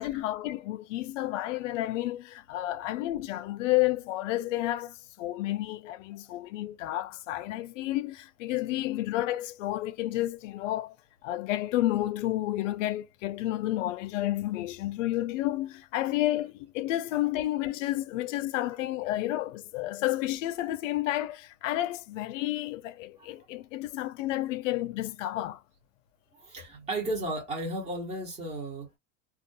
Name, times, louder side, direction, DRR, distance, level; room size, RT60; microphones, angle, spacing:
voice 1, 0.0-10.9 11.2-25.6, left 15 dB, 75° left, 0.5 m, -31 dB
voice 2, 26.3-29.0, right 1 dB, 15° right, 1.0 m, -34 dB
2.3 x 2.2 x 2.5 m
supercardioid pair, 160°, 39 cm